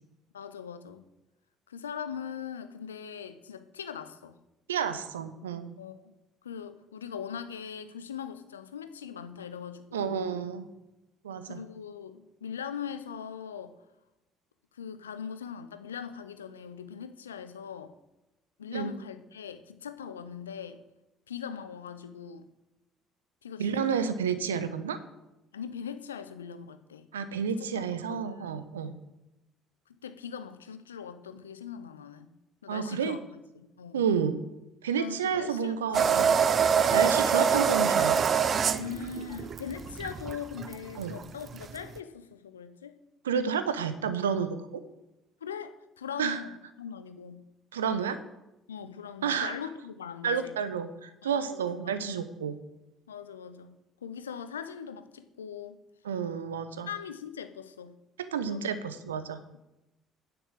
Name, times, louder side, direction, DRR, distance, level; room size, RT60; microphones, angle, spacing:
voice 1, 0.3-1.0 1.7-4.4 5.8-6.1 6.4-10.4 11.4-13.7 14.8-17.9 18.6-20.8 21.3-22.5 23.4-24.1 25.5-27.1 27.6-28.5 28.8-29.0 30.0-32.3 32.6-33.2 33.5-34.0 35.0-35.7 36.0-36.3 38.8-42.9 45.4-46.5 46.8-47.4 48.7-50.5 51.2-51.6 51.8-52.2 53.1-53.8 54.0-55.8 56.8-57.9 58.4-58.7, left 7 dB, 80° left, 11 dB, 0.8 m, -41 dB
voice 2, 4.7-5.7 9.9-10.7 11.2-11.6 18.7-18.9 23.6-25.0 27.1-28.9 32.7-33.2 33.9-34.4 34.8-36.4 36.9-38.2 41.0-41.2 43.2-44.8 46.2-46.4 47.7-48.2 49.2-49.6 50.2-52.6 56.0-56.9 58.3-59.4, right 7 dB, 75° right, 12 dB, 0.8 m, -30 dB
sound 1, 35.9-42.0, right 7 dB, 40° right, 0.6 m, -25 dB
10.0 x 7.1 x 7.3 m, 0.97 s
figure-of-eight pair, 50°, 0 cm